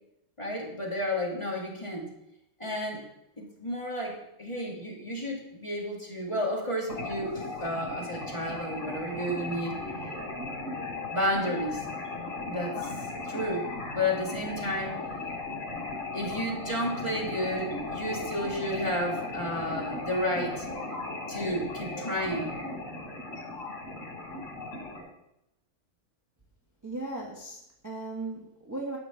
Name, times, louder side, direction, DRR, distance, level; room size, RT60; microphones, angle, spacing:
voice 1, 0.4-2.0 2.6-3.0 3.4-9.8 11.1-11.9 12.5-13.7 13.9-15.0 15.5-15.6 16.1-20.7 21.3-22.5, equal, 20° left, -2 dB, 2.1 m, -32 dB
sound 1, 6.9-25.0, left 2 dB, 75° left, 3.3 m, -36 dB
voice 2, 26.8-29.0, right 2 dB, 15° right, -2 dB, 1.1 m, -37 dB
10.5 x 5.1 x 6.9 m, 0.84 s
omnidirectional pair, 1.4 m